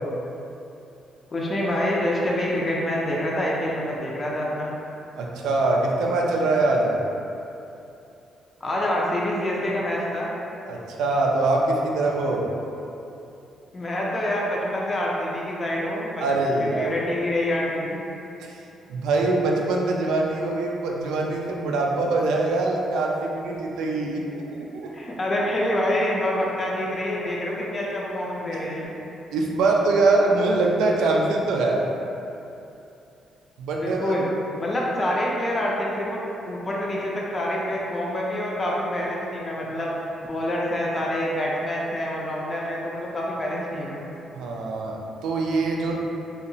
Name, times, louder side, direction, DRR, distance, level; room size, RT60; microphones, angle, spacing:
voice 1, 1.3-4.7 8.6-10.3 13.7-16.3 16.5-18.0 24.9-28.9 33.8-34.3 34.6-40.0 40.2-44.1, left 1 dB, 30° left, -4 dB, 0.4 m, -26 dB
voice 2, 5.2-7.0 10.7-12.5 16.2-16.9 18.4-18.6 18.9-24.9 29.3-31.8 33.6-34.1 44.3-45.9, right 2 dB, 85° right, -1 dB, 0.3 m, -23 dB
2.7 x 2.0 x 2.6 m, 2.8 s
cardioid pair, 90°, 0 cm